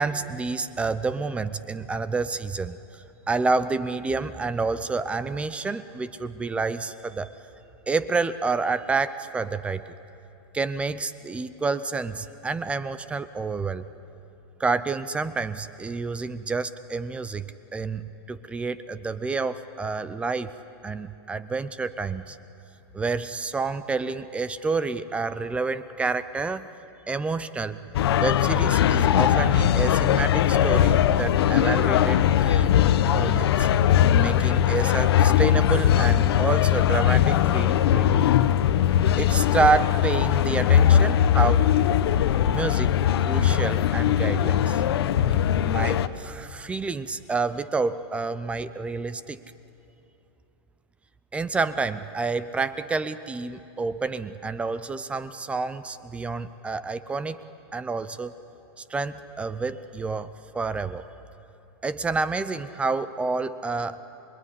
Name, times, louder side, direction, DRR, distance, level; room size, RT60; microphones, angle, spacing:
voice 1, 0.0-7.3 7.9-9.8 10.5-13.9 14.6-20.5 20.8-22.4 22.9-26.7 27.1-27.8 28.2-32.8 33.1-33.7 34.1-38.3 39.2-41.7 42.5-42.9 43.2-44.8 45.3-49.4 51.3-57.4 57.7-58.3 58.8-61.0 61.8-64.0, right 4 dB, 10° right, 14 dB, 0.5 m, -29 dB
sound 1, 27.9-46.1, left 10 dB, 70° left, 1.0 m, -20 dB
27.0 x 22.0 x 9.8 m, 2.8 s
supercardioid pair, 155°, 14 cm